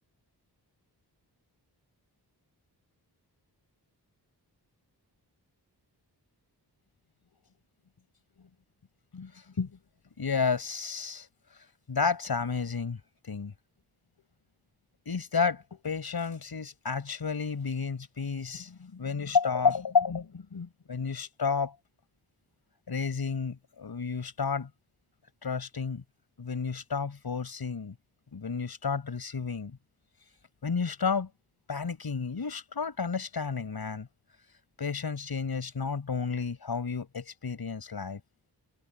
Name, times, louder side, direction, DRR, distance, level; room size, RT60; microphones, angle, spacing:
voice 1, 9.1-9.7 10.2-11.3 11.9-13.0 13.3-13.5 15.1-21.7 22.9-24.7 25.4-26.0 26.4-27.9 28.3-29.8 30.6-31.3 31.7-34.1 34.8-38.2, left 5 dB, 65° left, 6.2 m, -31 dB
wide cardioid pair, 125°, 41 cm